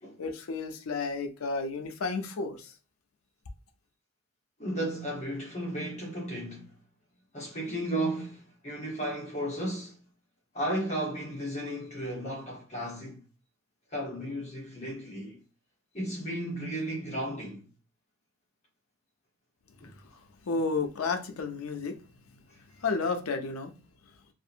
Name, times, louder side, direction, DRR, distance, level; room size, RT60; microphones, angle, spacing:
voice 1, 0.2-2.7 20.0-20.1 20.4-22.0 22.8-23.7, left 4 dB, 85° left, 0.5 m, -32 dB
voice 2, 4.6-6.7 7.3-10.0 10.5-13.2 13.9-15.4 15.9-17.6 19.8-19.9, right 1 dB, 35° left, 0.9 m, -34 dB
2.7 x 2.5 x 2.4 m
head